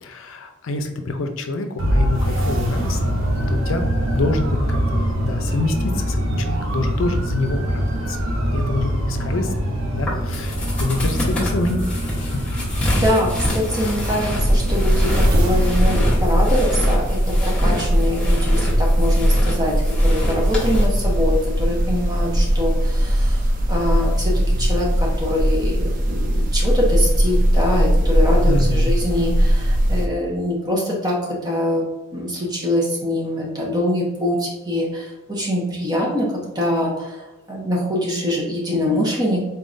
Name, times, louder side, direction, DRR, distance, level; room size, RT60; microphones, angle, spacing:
voice 1, 0.0-3.2 3.5-3.9 4.1-8.2 8.5-11.8 12.2-12.4 28.5-28.9, left 2 dB, 80° left, 6 dB, 0.5 m, -26 dB
sound 1, 1.8-16.2, equal, 80° right, 0.8 m, -24 dB
sound 2, 10.0-20.8, left 1 dB, 5° left, 1.1 m, -27 dB
voice 2, 12.9-31.9 32.1-39.4, left 1 dB, 20° right, -3 dB, 1.0 m, -24 dB
sound 3, 14.3-30.1, equal, 40° right, 0.6 m, -19 dB
4.1 x 3.7 x 2.6 m, 1.1 s
head